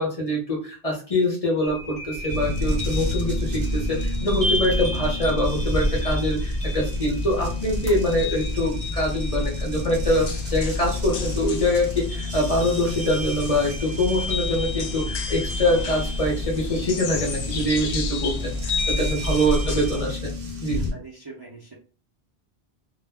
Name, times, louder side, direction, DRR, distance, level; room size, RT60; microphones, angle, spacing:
voice 1, 0.0-20.3 20.6-20.9, left 1 dB, 40° left, -2 dB, 0.8 m, -24 dB
sound 1, 1.6-20.0, equal, 5° left, 0.8 m, -29 dB
sound 2, 2.3-20.9, left 3 dB, 60° right, 0.8 m, -32 dB
sound 3, 10.1-19.9, left 6 dB, 80° left, 0.8 m, -38 dB
voice 2, 19.8-20.2 20.7-21.8, right 3 dB, 30° right, -3 dB, 0.5 m, -44 dB
2.2 x 2.0 x 3.4 m, 0.38 s
omnidirectional pair, 1.1 m